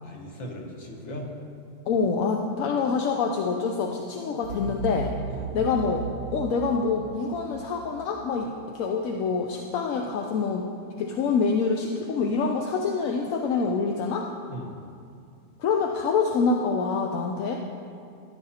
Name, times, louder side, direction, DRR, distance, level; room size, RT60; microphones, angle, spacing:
voice 1, 0.0-1.3 5.3-5.6 14.5-14.8, equal, 45° left, 0 dB, 1.5 m, -38 dB
voice 2, 1.9-5.1 5.5-6.1 6.3-10.7 11.0-14.3 15.6-17.6, left 5 dB, 65° left, 2 dB, 0.9 m, -26 dB
sound 1, 4.4-9.3, right 7 dB, 80° right, 1.2 m, -37 dB
14.0 x 10.0 x 2.8 m, 2.3 s
omnidirectional pair, 1.8 m